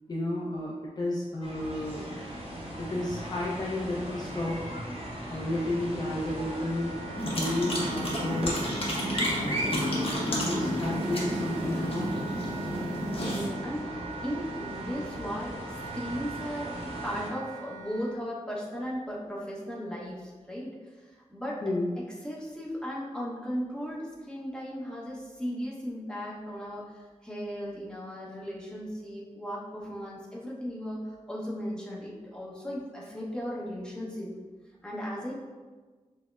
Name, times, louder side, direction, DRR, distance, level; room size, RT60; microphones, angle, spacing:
voice 1, 0.1-2.1 2.4-2.5 2.8-4.6 4.9-5.0 5.3-8.6 9.2-12.3 21.6-21.9, left 1 dB, 30° left, -5 dB, 0.4 m, -32 dB
sound 1, 1.4-17.3, equal, 50° right, 0.7 m, -38 dB
Wind instrument woodwind instrument, 6.4-18.2, right 5 dB, 80° right, 0.4 m, -43 dB
sound 2, 7.2-13.5, equal, 50° left, 0.8 m, -31 dB
voice 2, 13.2-21.6 22.0-34.3 34.8-35.3, equal, 5° left, -6 dB, 0.8 m, -37 dB
6.0 x 2.0 x 2.3 m, 1.4 s
wide cardioid pair, 110°, 13 cm